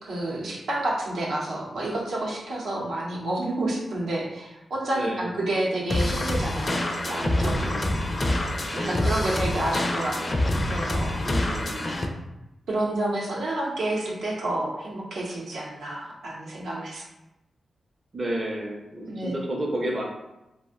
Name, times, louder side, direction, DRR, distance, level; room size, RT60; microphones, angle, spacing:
voice 1, 0.0-7.8 8.7-10.4 10.7-11.1 12.7-17.0 19.0-19.3, right 1 dB, 85° right, -4 dB, 0.6 m, -29 dB
voice 2, 4.9-5.3 7.4-8.0 8.7-9.2 11.2-11.9 18.1-20.0, right 1 dB, 40° right, -1 dB, 0.5 m, -31 dB
sound 1, 5.9-12.1, left 1 dB, 30° left, 0.4 m, -26 dB
2.5 x 2.0 x 3.5 m, 0.96 s
cardioid pair, 85°, 0 cm